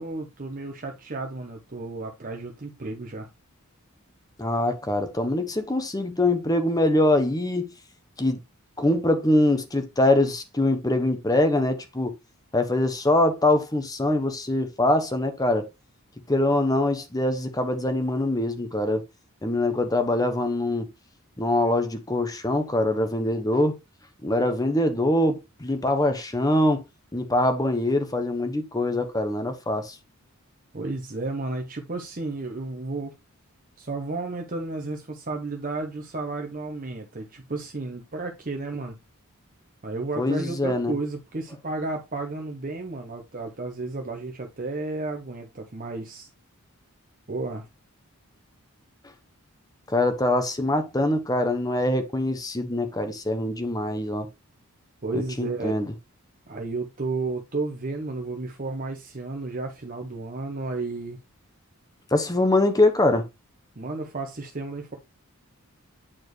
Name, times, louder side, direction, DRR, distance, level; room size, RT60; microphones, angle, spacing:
voice 1, 0.0-3.3 30.7-33.1 33.8-39.0 39.8-46.3 47.3-47.7 55.0-55.8 56.5-61.2 63.8-65.0, right 3 dB, 40° right, 0.9 m, -32 dB
voice 2, 4.4-7.7 8.2-8.4 8.8-12.1 12.5-15.7 16.3-19.0 19.4-20.9 21.4-23.8 24.2-26.8 27.1-30.0 40.2-40.9 49.9-54.3 55.1-55.9 62.1-63.3, left 1 dB, 15° left, 0.9 m, -23 dB
8.7 x 4.3 x 3.1 m
head